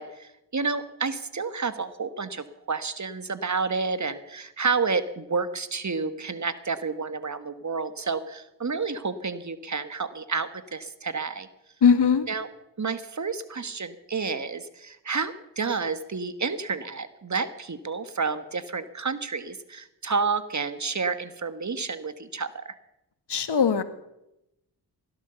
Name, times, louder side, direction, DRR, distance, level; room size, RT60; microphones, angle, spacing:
voice 1, 0.0-11.5 12.3-12.5 12.8-22.7, right 4 dB, 40° right, 12 dB, 1.5 m, -30 dB
voice 2, 11.8-12.3 23.3-23.8, left 6 dB, 65° left, 12 dB, 1.5 m, -20 dB
17.0 x 12.0 x 6.9 m, 0.88 s
cardioid pair, 50°, 44 cm